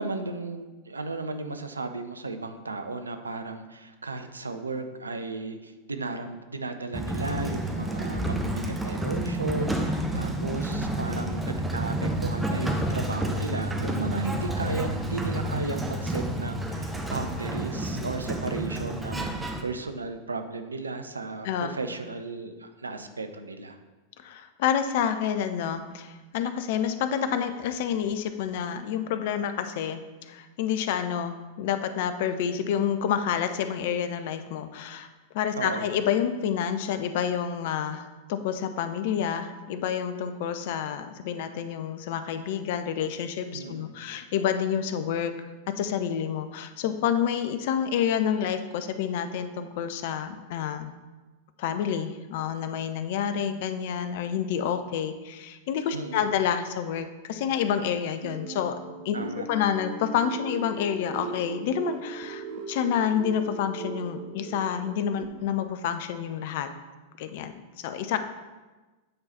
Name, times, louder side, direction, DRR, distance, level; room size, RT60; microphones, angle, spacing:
voice 1, 0.0-23.8 35.5-35.9 43.5-43.9 55.9-56.3 59.1-59.5, right 3 dB, 75° right, 7 dB, 0.5 m, -34 dB
Sliding door, 6.9-19.6, right 1 dB, 10° right, 0.7 m, -30 dB
voice 2, 21.4-21.8 24.2-35.1 35.3-45.3 45.8-50.9 51.6-58.8 59.0-59.2 59.5-66.7 67.2-68.2, left 8 dB, 50° left, 10 dB, 0.5 m, -28 dB
sound 1, 58.2-65.3, right 5 dB, 55° right, 0.8 m, -39 dB
8.7 x 3.9 x 4.1 m, 1.2 s
figure-of-eight pair, 90°, 0 cm